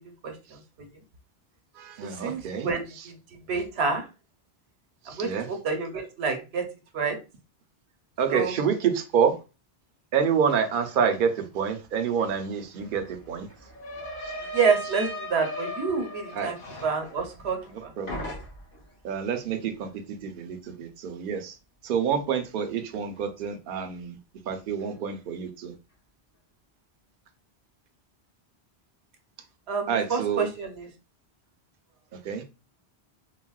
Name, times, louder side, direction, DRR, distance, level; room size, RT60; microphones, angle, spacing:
voice 1, 0.2-1.0 2.1-3.1 3.5-4.1 5.1-6.6 6.9-7.2 8.3-8.5 14.5-17.9 29.7-30.9, right 5 dB, 80° right, 1.0 m, -28 dB
voice 2, 1.8-2.7 5.1-5.5 8.2-9.3 10.1-13.5 16.4-16.5 18.0-18.3 19.0-19.9 20.2-21.6 21.8-24.2 24.5-25.7 29.9-30.5 32.2-32.4, right 7 dB, 60° right, 0.7 m, -27 dB
sound 1, 12.2-12.3 12.5-17.8 18.1-18.8, left 1 dB, 55° left, 1.1 m, -37 dB
3.9 x 2.1 x 2.2 m
omnidirectional pair, 1.1 m